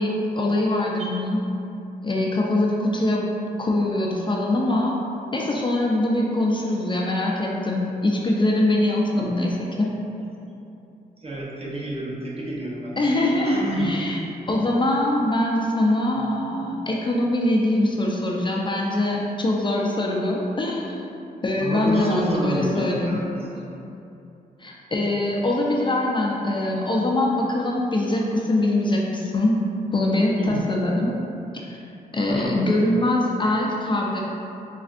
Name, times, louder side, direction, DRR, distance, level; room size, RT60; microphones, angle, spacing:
voice 1, 0.0-1.4 2.0-3.3 3.6-5.0 5.3-9.9 13.0-14.2 14.5-21.1 21.4-23.2 24.6-29.6 29.9-31.2 31.6-31.8 32.1-34.2, left 1 dB, 30° left, -2 dB, 0.4 m, -23 dB
voice 2, 11.2-13.9 21.6-23.5 30.1-30.6 32.3-32.5, right 1 dB, 35° right, -4 dB, 0.8 m, -29 dB
4.2 x 2.4 x 2.5 m, 2.7 s
cardioid pair, 60°, 16 cm